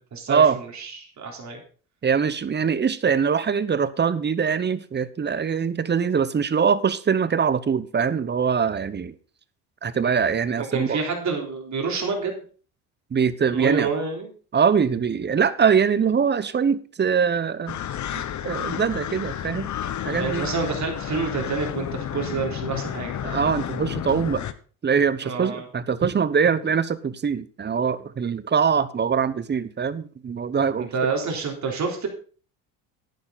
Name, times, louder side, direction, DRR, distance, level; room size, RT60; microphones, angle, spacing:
voice 1, 0.1-1.6 10.6-12.4 13.5-14.3 20.1-23.2 25.2-25.7 30.9-32.1, right 4 dB, 45° right, 3.7 m, -28 dB
voice 2, 2.0-9.1 9.8-11.0 13.1-13.9 14.5-17.8 18.4-19.7 20.0-20.5 23.2-24.4 24.8-30.9, right 6 dB, 25° right, 0.9 m, -23 dB
sound 1, 17.7-24.5, left 10 dB, 45° left, 1.0 m, -31 dB
10.5 x 9.7 x 4.0 m
supercardioid pair, 90°, 40 cm